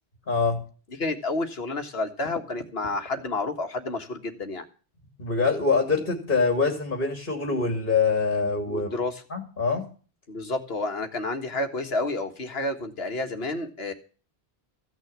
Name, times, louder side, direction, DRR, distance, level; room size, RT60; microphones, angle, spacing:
voice 1, 0.3-0.6 5.2-8.9 9.3-9.9, left 4 dB, 55° left, 4 dB, 2.7 m, -24 dB
voice 2, 1.0-4.7 8.7-9.2 10.3-13.9, left 2 dB, 75° left, 6 dB, 1.9 m, -30 dB
15.5 x 6.4 x 8.6 m, 0.37 s
omnidirectional pair, 1.1 m